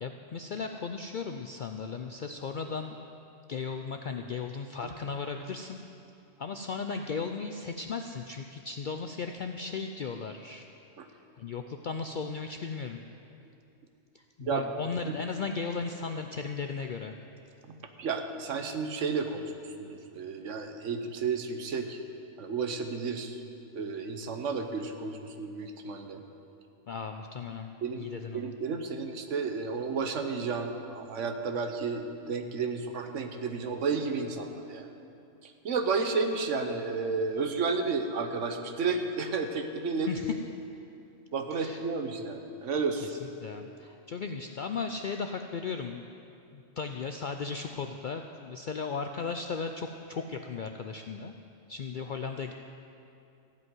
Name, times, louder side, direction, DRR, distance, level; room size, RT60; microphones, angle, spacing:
voice 1, 0.0-3.0 3.5-5.8 6.4-10.7 11.4-13.0 14.1-17.1 26.9-28.5 40.1-40.3 41.5-41.8 43.0-46.0 46.5-51.3 51.7-52.5, left 5 dB, 65° left, 5 dB, 0.5 m, -36 dB
voice 2, 14.4-14.7 15.1-15.2 17.7-19.5 19.8-22.0 22.4-23.4 23.7-26.2 27.8-28.1 28.3-34.9 35.6-40.1 41.3-43.1, right 4 dB, 70° right, 6 dB, 1.2 m, -32 dB
15.0 x 5.4 x 9.3 m, 2.7 s
omnidirectional pair, 1.3 m